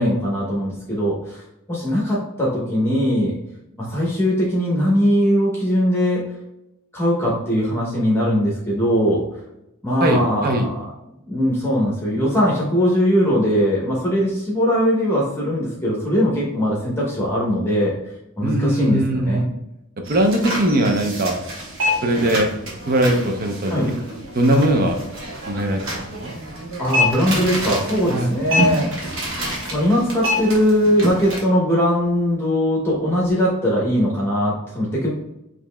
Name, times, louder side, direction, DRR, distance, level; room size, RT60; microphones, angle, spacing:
voice 1, 0.0-1.4 1.7-3.3 3.8-6.2 6.9-9.2 9.8-10.9 11.3-17.9 18.4-19.5 23.7-23.9 26.8-29.1 29.7-35.1, equal, 10° left, -5 dB, 0.9 m, -20 dB
voice 2, 10.0-10.7 18.4-19.5 20.1-21.3 22.0-22.5 22.9-23.8 24.3-25.0 25.5-26.3 28.1-28.3, right 1 dB, 45° right, 4 dB, 0.6 m, -20 dB
sound 1, 20.0-31.4, left 1 dB, 65° right, 1.2 m, -27 dB
5.0 x 2.9 x 2.2 m, 0.87 s
head